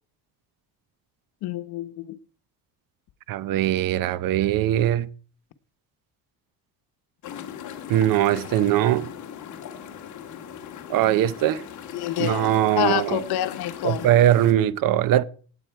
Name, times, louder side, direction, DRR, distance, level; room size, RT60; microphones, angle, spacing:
voice 1, 1.4-2.1 11.9-14.1, left 14 dB, 90° left, 1.2 m, -28 dB
voice 2, 3.3-5.1 7.9-9.1 10.9-11.6 12.2-13.2 13.8-15.2, right 12 dB, 60° right, 0.7 m, -21 dB
sound 1, 7.2-14.5, left 9 dB, 50° left, 2.0 m, -38 dB
18.5 x 8.2 x 4.6 m
cardioid pair, 155°, 37 cm